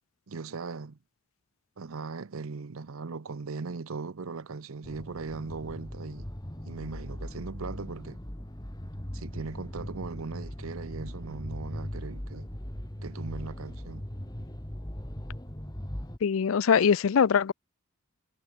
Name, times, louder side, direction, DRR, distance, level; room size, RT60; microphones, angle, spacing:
voice 1, 0.3-1.0 1.8-6.3 6.6-8.2 9.1-12.5 13.0-14.1, right 4 dB, 75° right, 0.7 m, -39 dB
sound 1, 4.8-16.2, equal, 20° left, 1.9 m, -39 dB
voice 2, 16.2-17.5, left 7 dB, 70° left, 0.4 m, -22 dB
head